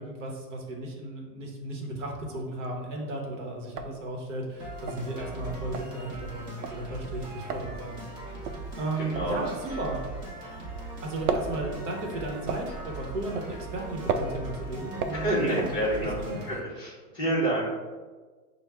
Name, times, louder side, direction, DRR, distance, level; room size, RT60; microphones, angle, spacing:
voice 1, 0.0-8.0 8.8-10.0 11.0-15.8 16.0-16.4, right 2 dB, 50° right, 0 dB, 0.9 m, -35 dB
sound 1, 2.4-2.9 3.2-3.3 3.6-10.7 10.9-16.3, right 5 dB, 70° right, 0.6 m, -35 dB
sound 2, 4.6-16.6, right 2 dB, 30° right, 0.7 m, -40 dB
voice 2, 9.0-9.3 15.1-16.1 16.5-17.6, right 1 dB, 10° left, -10 dB, 0.7 m, -28 dB
6.0 x 2.1 x 3.4 m, 1.4 s
supercardioid pair, 165°, 47 cm